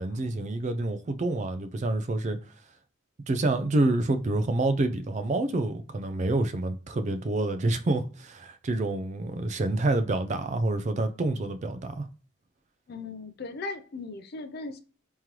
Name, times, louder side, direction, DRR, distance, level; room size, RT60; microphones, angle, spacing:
voice 1, 0.0-2.4 3.3-12.1, right 2 dB, 35° right, 0.4 m, -27 dB
voice 2, 12.9-14.8, left 3 dB, 50° left, 0.5 m, -37 dB
3.7 x 3.0 x 2.9 m
head